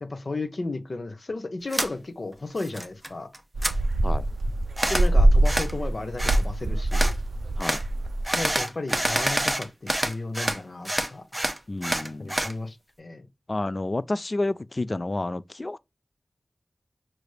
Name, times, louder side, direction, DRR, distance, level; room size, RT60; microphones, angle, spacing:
voice 1, 0.0-3.3 4.9-7.1 8.3-11.2 12.2-13.3, left 2 dB, 55° left, 0.9 m, -34 dB
sound 1, 1.7-1.9 2.3-3.1 3.3-3.7 4.8-5.1 5.4-5.7 6.2-6.4 6.9-7.1 7.6-7.8 8.2-10.6 10.8-12.5, right 1 dB, 15° right, 0.8 m, -27 dB
sound 2, 3.5-8.5, right 1 dB, 85° right, 0.3 m, -23 dB
voice 2, 11.7-12.3 13.5-15.8, left 2 dB, 40° left, 0.3 m, -29 dB
5.9 x 3.3 x 2.2 m
wide cardioid pair, 80°, 0 cm